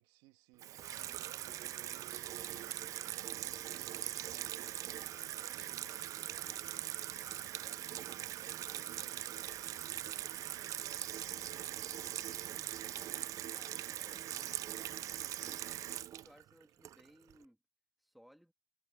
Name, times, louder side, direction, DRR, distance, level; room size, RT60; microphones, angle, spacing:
voice 1, 0.0-2.5 2.9-11.9, right 20 dB, 70° right, 2.0 m, -64 dB
Water tap faucet / Sink (filling or washing), 0.6-17.3, right 12 dB, 35° right, 0.4 m, -41 dB
sound 1, 0.7-17.5, right 5 dB, 20° right, 6.2 m, -83 dB
voice 2, 13.5-17.6 18.0-18.5, equal, ahead, 2.7 m, -63 dB
cardioid pair, 145°, 9 cm